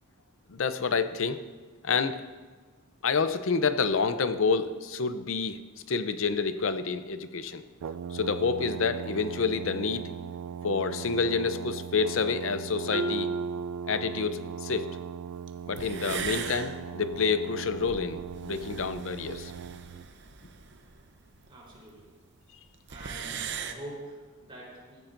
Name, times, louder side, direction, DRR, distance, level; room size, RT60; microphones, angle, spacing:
voice 1, 0.5-1.4 1.8-2.3 3.0-5.6 5.9-7.6 8.1-10.0 10.6-13.3 13.9-14.9 15.7-19.5, left 5 dB, 60° left, 11 dB, 0.6 m, -28 dB
Brass instrument, 7.8-20.1, right 8 dB, 80° right, 0.3 m, -39 dB
Marimba xylophone, 12.9-14.7, right 2 dB, 5° right, 0.9 m, -35 dB
sound 1, 15.5-15.6 15.8-21.8 22.0-22.1 22.3-22.4 22.7-23.7, right 6 dB, 50° right, 0.7 m, -39 dB
voice 2, 21.5-22.1 22.9-25.0, right 1 dB, 25° right, -6 dB, 3.9 m, -45 dB
14.5 x 13.5 x 2.6 m, 1.4 s
head